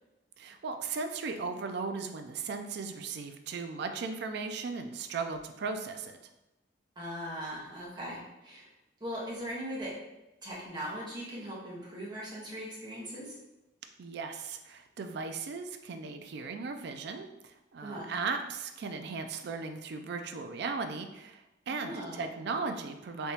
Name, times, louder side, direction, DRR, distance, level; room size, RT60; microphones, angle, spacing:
voice 1, 0.4-6.2 14.0-23.3, right 4 dB, 65° right, 7 dB, 0.4 m, -37 dB
voice 2, 7.0-8.7 9.0-10.0 10.4-13.3 17.8-18.1 21.7-22.3, equal, 25° right, -6 dB, 1.0 m, -39 dB
3.4 x 2.8 x 2.8 m, 0.96 s
head